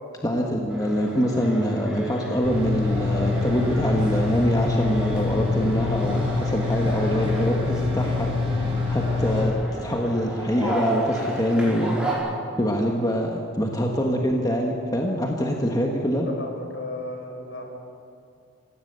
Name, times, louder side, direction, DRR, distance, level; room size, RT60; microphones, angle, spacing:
voice 1, 0.2-9.5 9.8-12.0 12.6-16.3, equal, 20° left, 1 dB, 1.6 m, -25 dB
sound 1, 0.7-12.1, right 1 dB, 5° right, 5.2 m, -32 dB
sound 2, 2.4-9.4, left 4 dB, 25° right, 6.1 m, -25 dB
voice 2, 16.4-17.7, left 1 dB, 60° left, 2 dB, 4.9 m, -34 dB
26.0 x 16.5 x 8.2 m, 2.4 s
head